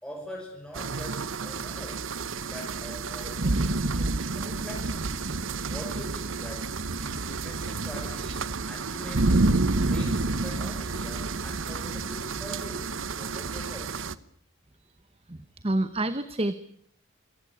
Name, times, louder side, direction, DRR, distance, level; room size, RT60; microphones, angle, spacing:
voice 1, 0.0-2.1 2.4-5.1 5.7-9.5 9.9-12.9 13.1-14.1, equal, 5° left, -1 dB, 6.2 m, -43 dB
sound 1, 0.7-14.1, right 3 dB, 70° right, 1.0 m, -29 dB
voice 2, 15.2-16.5, right 1 dB, 30° right, 13 dB, 0.9 m, -29 dB
26.5 x 15.5 x 9.9 m, 0.67 s
head